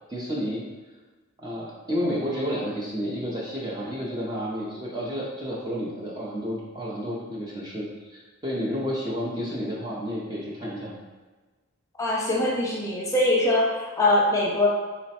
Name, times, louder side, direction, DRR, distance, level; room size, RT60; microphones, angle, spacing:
voice 1, 0.1-0.6 1.4-11.0, equal, 20° right, -5 dB, 0.5 m, -31 dB
voice 2, 12.0-14.7, left 1 dB, 15° left, -4 dB, 0.7 m, -22 dB
4.0 x 2.1 x 4.1 m, 1.3 s
head